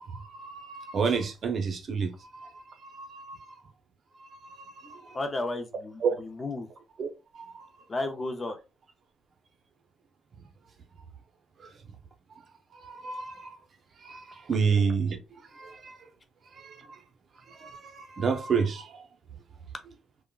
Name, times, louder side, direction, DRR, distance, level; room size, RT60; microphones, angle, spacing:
voice 1, 0.0-3.6 4.2-5.2 6.0-6.1 7.0-7.1 7.3-7.7 11.6-11.7 12.3-12.4 12.7-13.6 14.0-16.1 16.5-17.0 17.5-19.0, right 5 dB, 55° right, 0.6 m, -31 dB
voice 2, 5.1-6.7 7.9-8.6, left 2 dB, 30° left, 0.5 m, -33 dB
3.5 x 2.1 x 2.3 m
cardioid pair, 90°, 0 cm